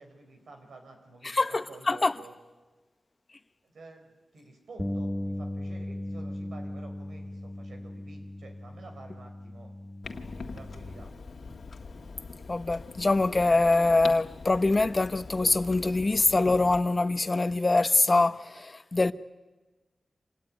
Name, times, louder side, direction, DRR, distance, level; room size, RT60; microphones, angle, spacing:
voice 1, 0.0-2.4 3.6-9.7 10.4-11.1, right 3 dB, 85° right, 5.3 m, -50 dB
voice 2, 1.2-2.1 12.5-19.1, left 2 dB, 40° left, 1.1 m, -24 dB
Bass guitar, 4.8-11.0, left 1 dB, 5° left, 1.2 m, -37 dB
Clock, 10.0-16.8, left 4 dB, 75° left, 1.8 m, -43 dB
26.0 x 18.0 x 9.9 m
cardioid pair, 45°, 0 cm